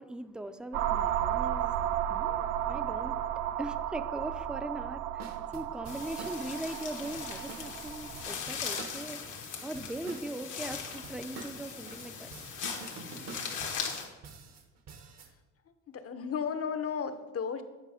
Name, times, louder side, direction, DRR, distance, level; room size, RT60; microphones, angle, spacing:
voice 1, 0.0-3.2 3.6-9.2 9.6-12.3, right 1 dB, 5° right, 0.4 m, -40 dB
sound 1, 0.7-8.3, right 11 dB, 85° right, 0.5 m, -33 dB
sound 2, 5.2-15.3, right 4 dB, 60° right, 1.0 m, -48 dB
sound 3, 5.9-14.0, left 6 dB, 85° left, 1.3 m, -39 dB
voice 2, 15.9-17.6, left 6 dB, 50° left, 0.7 m, -34 dB
9.1 x 4.7 x 5.0 m
cardioid pair, 90°, 30 cm